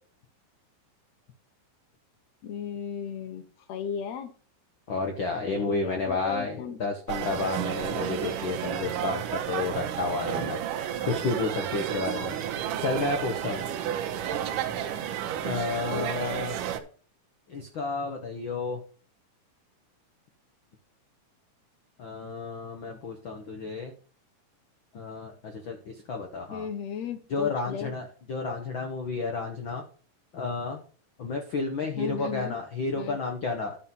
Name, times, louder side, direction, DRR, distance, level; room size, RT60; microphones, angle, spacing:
voice 1, 2.4-4.3 5.5-6.8 15.9-16.4 26.5-27.9 32.0-32.5 33.0-33.2, left 7 dB, 65° left, 8 dB, 1.8 m, -35 dB
voice 2, 4.9-10.6 11.0-12.4 12.8-13.6 15.4-16.6 17.5-18.8 22.0-23.9 24.9-26.7 27.3-29.8 30.3-30.8 31.2-33.8, left 3 dB, 85° left, 4 dB, 1.0 m, -31 dB
sound 1, 7.1-16.8, right 10 dB, 75° right, 2.4 m, -31 dB
12.0 x 4.4 x 5.4 m, 0.40 s
omnidirectional pair, 4.0 m